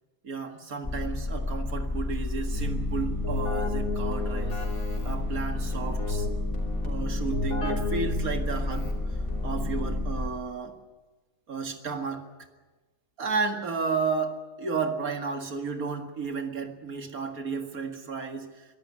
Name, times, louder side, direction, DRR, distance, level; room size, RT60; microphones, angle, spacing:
voice 1, 0.2-4.6 5.0-6.3 6.8-8.9 9.4-10.7 11.5-12.2 13.2-18.6, right 5 dB, 70° right, 5 dB, 2.3 m, -32 dB
sound 1, 0.8-10.3, left 2 dB, 30° left, 0.4 m, -31 dB
Keyboard (musical), 2.5-10.4, left 3 dB, 65° left, 3.7 m, -35 dB
23.0 x 12.0 x 9.6 m, 1.2 s
omnidirectional pair, 1.6 m